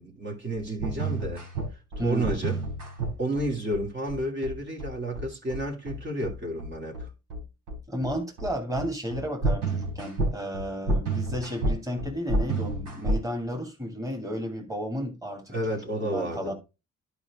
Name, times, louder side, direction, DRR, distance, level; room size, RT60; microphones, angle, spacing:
voice 1, 0.0-1.4 2.0-2.6 3.2-7.1 15.5-16.5, right 1 dB, 40° right, 2.7 m, -31 dB
sound 1, 0.5-13.2, right 2 dB, 90° right, 3.9 m, -29 dB
voice 2, 2.0-2.4 7.9-16.5, equal, 10° right, 2.6 m, -33 dB
11.0 x 5.1 x 3.6 m
cardioid pair, 90°, 30 cm